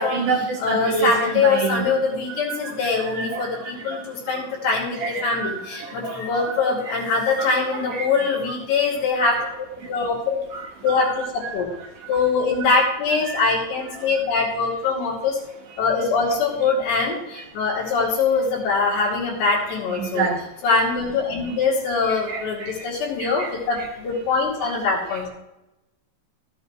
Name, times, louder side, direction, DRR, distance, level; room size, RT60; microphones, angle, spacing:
voice 1, 0.0-1.8 2.3-4.4 5.0-6.9 7.4-7.5 7.9-8.1 9.8-9.9 10.5-11.1 11.4-11.6 12.0-12.1 13.3-13.4 13.9-14.2 19.0-19.1 19.9-20.4 22.1-22.7 23.2-23.5 23.8-23.9 24.6-24.7, right 4 dB, 60° right, 1 dB, 2.3 m, -29 dB
voice 2, 0.6-10.4 10.8-11.7 12.1-15.4 15.8-20.3 20.6-25.3, left 4 dB, 80° left, -5 dB, 4.5 m, -23 dB
14.5 x 8.0 x 3.1 m, 0.95 s
omnidirectional pair, 5.0 m